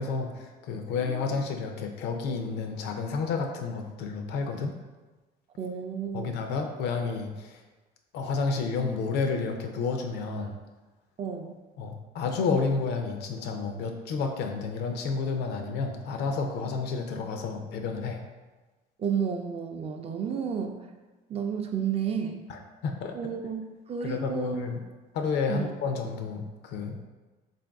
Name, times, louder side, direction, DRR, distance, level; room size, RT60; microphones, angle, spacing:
voice 1, 0.0-4.8 6.1-7.6 8.1-10.6 11.8-18.2 22.5-23.1 24.0-24.8 25.1-27.0, left 4 dB, 80° left, 4 dB, 0.5 m, -30 dB
voice 2, 5.6-6.3 11.2-11.6 19.0-20.8 21.3-22.4 23.1-23.6 23.9-24.7 25.5-25.7, right 7 dB, 35° right, 4 dB, 0.4 m, -31 dB
3.8 x 2.6 x 3.5 m, 1.2 s
cardioid pair, 110°, 17 cm